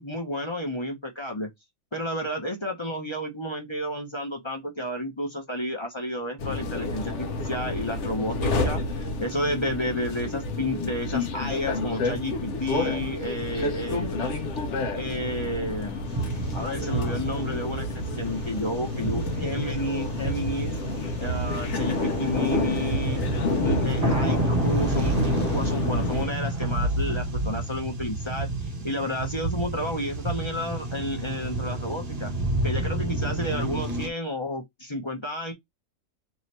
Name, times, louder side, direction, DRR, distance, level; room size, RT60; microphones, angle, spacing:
voice 1, 0.0-1.5 1.9-14.3 14.9-16.0 16.5-20.8 21.2-23.2 23.6-32.3 32.6-35.5, left 1 dB, 25° left, 0.8 m, -31 dB
sound 1, 6.4-26.3, left 2 dB, 55° left, 0.9 m, -29 dB
sound 2, 16.1-34.1, right 2 dB, 30° right, 0.8 m, -30 dB
3.1 x 3.0 x 4.1 m
omnidirectional pair, 1.7 m